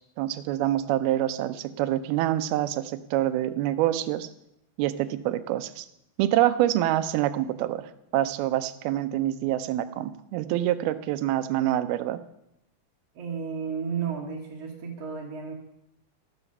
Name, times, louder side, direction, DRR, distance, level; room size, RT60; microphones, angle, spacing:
voice 1, 0.2-4.3 4.8-5.9 6.2-12.2, right 13 dB, 85° right, 12 dB, 2.6 m, -26 dB
voice 2, 13.2-15.5, right 6 dB, 50° right, -2 dB, 2.1 m, -33 dB
13.0 x 13.0 x 5.4 m, 0.81 s
omnidirectional pair, 4.3 m